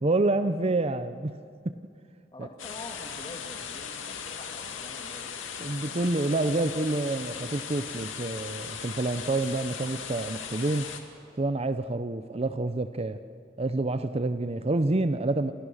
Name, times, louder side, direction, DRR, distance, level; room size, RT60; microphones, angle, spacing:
voice 1, 0.0-1.4 1.6-1.8 2.4-2.5 5.6-10.9 11.4-13.2 13.6-15.5, right 2 dB, 30° right, 11 dB, 0.6 m, -28 dB
voice 2, 2.3-5.3, left 1 dB, 25° left, 3 dB, 2.8 m, -45 dB
sound 1, 2.6-11.0, left 7 dB, 85° left, 2.3 m, -38 dB
sound 2, 3.9-10.9 11.4-11.5, equal, 10° right, 7.8 m, -57 dB
28.0 x 28.0 x 6.5 m, 2.3 s
head